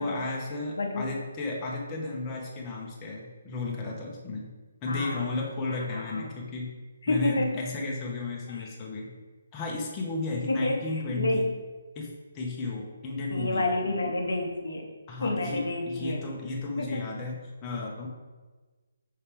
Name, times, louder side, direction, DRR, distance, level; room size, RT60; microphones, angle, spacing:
voice 1, 0.0-4.5 4.8-6.7 7.1-9.1 9.5-11.4 11.9-13.7 15.1-18.1, left 3 dB, 20° left, -2 dB, 1.0 m, -34 dB
voice 2, 0.8-1.1 4.9-5.3 5.9-6.4 7.0-7.6 8.5-8.7 10.5-11.5 13.3-14.9 15.2-16.2 16.8-17.1, left 2 dB, 65° left, 2 dB, 0.9 m, -29 dB
5.6 x 5.5 x 3.4 m, 1.3 s
figure-of-eight pair, 140°, 0 cm